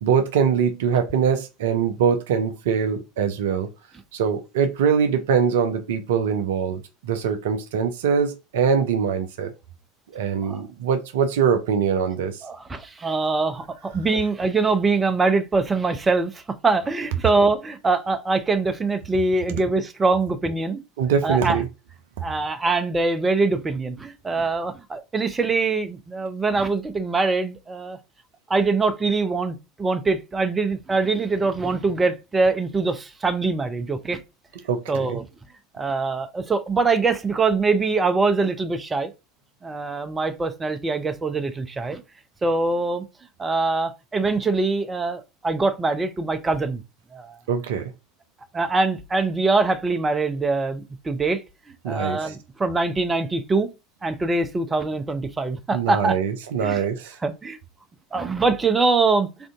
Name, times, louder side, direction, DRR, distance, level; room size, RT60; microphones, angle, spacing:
voice 1, 0.0-3.7 4.1-9.5 10.1-12.4 21.0-21.7 34.7-35.2 47.5-47.9 51.8-52.4 55.7-57.2, right 7 dB, 65° right, 0.5 m, -23 dB
voice 2, 12.4-20.8 21.2-21.6 22.2-28.0 28.5-34.2 34.9-35.2 35.7-39.1 39.6-42.0 42.4-43.1 43.4-46.8 47.1-47.4 48.5-51.4 51.9-53.7 54.0-56.2 56.6-56.8 57.2-57.6 58.1-59.3, right 3 dB, 20° right, 0.6 m, -23 dB
3.4 x 2.5 x 3.6 m
figure-of-eight pair, 75°, 0 cm